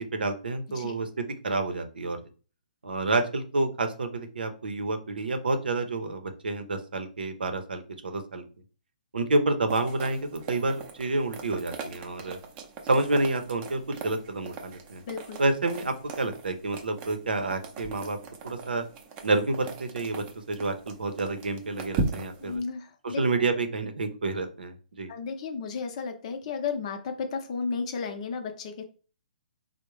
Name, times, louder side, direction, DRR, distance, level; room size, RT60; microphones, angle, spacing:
voice 1, 0.1-1.1 1.4-2.2 2.8-8.4 9.1-12.4 12.9-15.0 15.4-18.2 18.4-18.8 19.2-22.6 23.0-25.1, right 2 dB, 85° right, 7 dB, 0.6 m, -29 dB
sound 1, 9.7-22.6, right 4 dB, 25° right, 0.5 m, -39 dB
voice 2, 15.1-15.4 22.4-23.2 25.1-28.8, left 5 dB, 45° left, 6 dB, 0.6 m, -33 dB
3.4 x 2.1 x 3.1 m, 0.37 s
hypercardioid pair, 145°, 5 cm